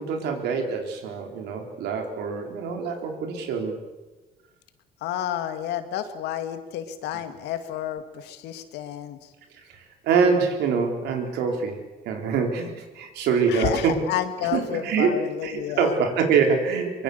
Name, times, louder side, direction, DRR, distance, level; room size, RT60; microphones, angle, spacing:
voice 1, 0.0-3.8 10.0-11.8 12.1-13.9 14.5-17.0, right 5 dB, 80° right, 4 dB, 4.0 m, -24 dB
voice 2, 5.0-9.2 13.5-16.0, left 10 dB, 85° left, 8 dB, 2.2 m, -30 dB
24.0 x 22.5 x 7.0 m, 1.2 s
cardioid pair, 110°, 17 cm